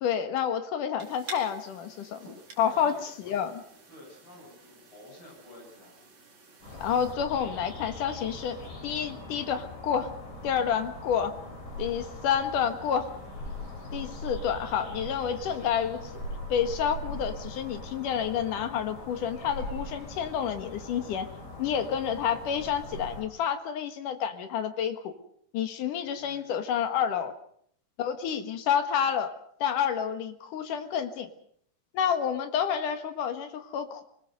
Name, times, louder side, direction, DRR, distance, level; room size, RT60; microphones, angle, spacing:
voice 1, 0.0-2.2 2.6-3.5 6.8-10.1 10.4-11.3 11.8-13.1 13.9-16.2 16.5-21.3 21.6-25.1 25.5-27.3 28.0-29.3 29.6-31.3 31.9-34.0, left 8 dB, 60° left, 8 dB, 2.7 m, -29 dB
sound 1, 1.0-7.2, right 4 dB, 50° right, 4.8 m, -49 dB
voice 2, 2.2-3.5 3.9-6.0 26.0-26.5, left 1 dB, 30° left, -2 dB, 8.6 m, -51 dB
sound 2, 6.6-23.2, left 1 dB, 90° left, 9.6 m, -41 dB
24.5 x 20.0 x 6.6 m, 0.65 s
omnidirectional pair, 4.6 m